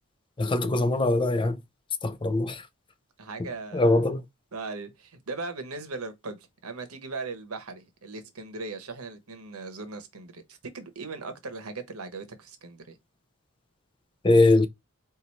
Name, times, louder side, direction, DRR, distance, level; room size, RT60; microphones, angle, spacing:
voice 1, 0.4-1.6 2.0-2.6 3.7-4.2 14.2-14.7, left 2 dB, 25° left, 0.5 m, -22 dB
voice 2, 3.2-4.2 4.5-13.0, right 3 dB, 80° right, 1.1 m, -39 dB
4.6 x 2.7 x 4.1 m
head